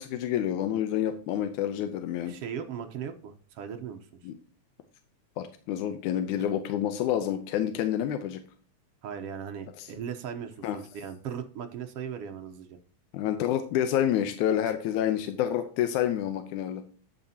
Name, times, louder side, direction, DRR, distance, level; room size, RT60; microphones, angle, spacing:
voice 1, 0.0-2.4 4.2-4.3 5.4-8.4 9.8-9.9 10.6-10.8 13.1-16.8, left 10 dB, 90° left, 8 dB, 2.2 m, -28 dB
voice 2, 2.3-4.1 6.4-6.5 9.0-12.8 14.6-14.7, right 8 dB, 65° right, 6 dB, 1.6 m, -38 dB
10.5 x 8.5 x 2.8 m, 0.42 s
omnidirectional pair, 3.4 m